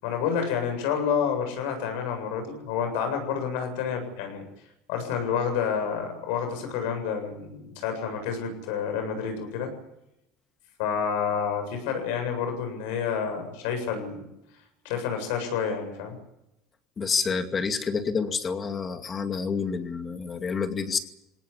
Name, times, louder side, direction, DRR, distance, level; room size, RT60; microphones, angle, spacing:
voice 1, 0.0-4.4 4.9-9.7 10.8-14.2 14.8-16.2, left 7 dB, 85° left, 5 dB, 7.6 m, -29 dB
voice 2, 17.0-21.0, left 5 dB, 30° left, 7 dB, 2.4 m, -28 dB
21.0 x 18.5 x 10.0 m, 0.86 s
supercardioid pair, 115°, 0 cm